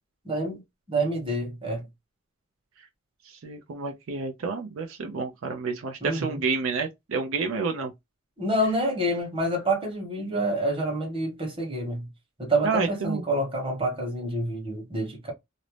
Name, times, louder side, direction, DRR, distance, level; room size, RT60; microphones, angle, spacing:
voice 1, 0.2-0.6 0.9-1.9 6.0-6.4 8.4-12.1 12.4-15.3, right 1 dB, 25° right, 1.1 m, -27 dB
voice 2, 3.4-7.9 12.6-13.2, right 4 dB, 75° right, 0.5 m, -29 dB
2.5 x 2.0 x 3.1 m
head